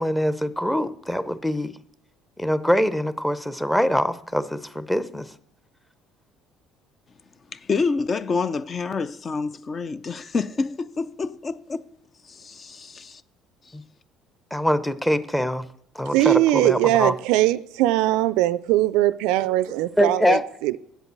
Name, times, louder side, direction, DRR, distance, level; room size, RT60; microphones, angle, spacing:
voice 1, 0.0-1.7 2.4-5.3 13.7-13.8 14.5-15.7 15.9-17.1 20.0-20.4, equal, 10° left, 0.8 m, -23 dB
voice 2, 7.5-11.9 12.2-13.2 13.7-13.8, left 4 dB, 40° left, 0.5 m, -28 dB
voice 3, 16.1-20.8, right 15 dB, 75° right, 0.3 m, -21 dB
8.0 x 7.4 x 8.1 m
hypercardioid pair, 65°, 0 cm